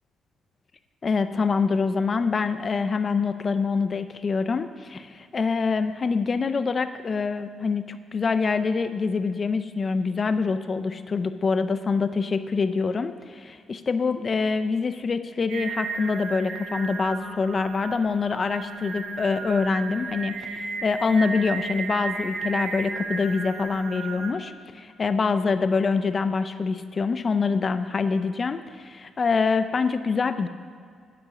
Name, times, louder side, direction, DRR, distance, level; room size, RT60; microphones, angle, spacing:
voice 1, 1.0-30.5, left 4 dB, 40° left, 11 dB, 0.4 m, -25 dB
Singing, 15.5-24.3, right 4 dB, 70° right, 1.1 m, -34 dB
9.7 x 7.0 x 6.6 m, 2.1 s
cardioid pair, 90°, 0 cm